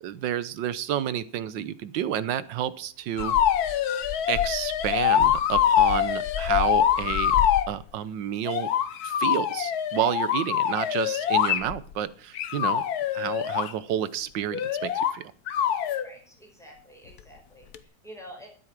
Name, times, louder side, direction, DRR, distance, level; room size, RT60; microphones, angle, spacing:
voice 1, 0.0-3.3 4.3-7.4 7.7-8.7 9.0-12.8 13.1-15.2, right 10 dB, 80° right, 16 dB, 1.5 m, -30 dB
sound 1, 3.2-7.7 8.5-11.9 12.4-13.7 14.5-15.2 15.5-16.0 17.7-17.8, left 10 dB, 60° left, 1.3 m, -24 dB
voice 2, 16.0-18.5, equal, ahead, 1 dB, 5.1 m, -48 dB
13.5 x 8.2 x 6.0 m, 0.43 s
omnidirectional pair, 2.0 m